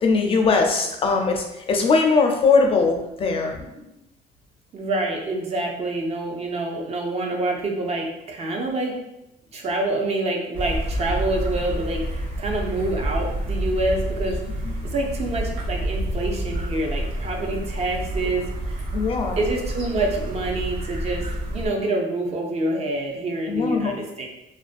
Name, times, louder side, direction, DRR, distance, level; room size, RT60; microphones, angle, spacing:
voice 1, 0.0-3.6 14.6-14.7 18.9-19.4 23.5-23.9, left 4 dB, 35° left, 3 dB, 0.4 m, -20 dB
voice 2, 4.7-9.0 9.5-12.1 12.4-14.4 14.8-18.8 19.4-24.3, right 2 dB, 40° right, 1 dB, 0.5 m, -26 dB
sound 1, 10.5-21.7, right 1 dB, 75° right, 0.8 m, -28 dB
2.4 x 2.1 x 2.4 m, 0.88 s
cardioid pair, 110°, 17 cm